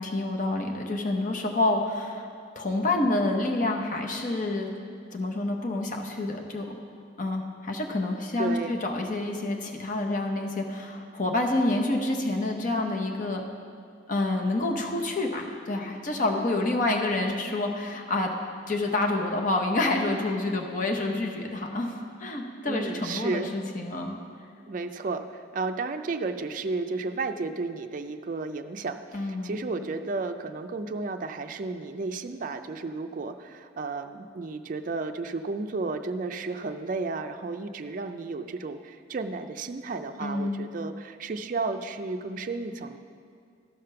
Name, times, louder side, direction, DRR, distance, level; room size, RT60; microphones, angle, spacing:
voice 1, 0.0-2.3 2.5-4.7 5.1-6.6 7.2-13.4 14.1-18.3 18.7-24.2 29.1-29.6 40.2-40.7, left 2 dB, 45° left, 2 dB, 0.9 m, -28 dB
voice 2, 8.4-8.8 22.7-23.5 24.7-43.0, right 3 dB, 45° right, 7 dB, 0.4 m, -33 dB
13.0 x 5.1 x 5.7 m, 2.2 s
head